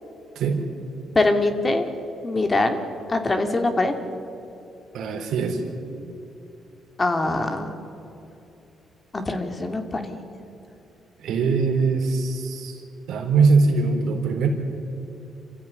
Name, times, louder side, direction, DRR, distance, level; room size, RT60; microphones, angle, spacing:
voice 1, 1.1-1.9 2.2-2.8 3.1-3.9 7.0-7.7 9.1-10.2, left 2 dB, 25° left, 5 dB, 2.8 m, -23 dB
voice 2, 4.9-5.6 11.2-14.5, right 4 dB, 80° right, 2 dB, 4.2 m, -22 dB
27.0 x 15.5 x 9.9 m, 2.9 s
cardioid pair, 90°, 0 cm